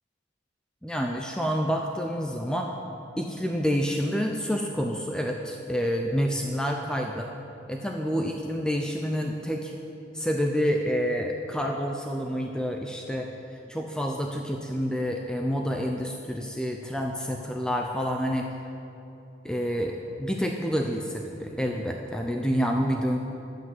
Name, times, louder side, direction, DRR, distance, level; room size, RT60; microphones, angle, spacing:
voice 1, 0.8-2.7 3.2-7.3 7.7-9.7 10.1-18.5 19.4-23.2, equal, 5° left, 1 dB, 0.6 m, -28 dB
12.0 x 8.6 x 7.6 m, 2.9 s
head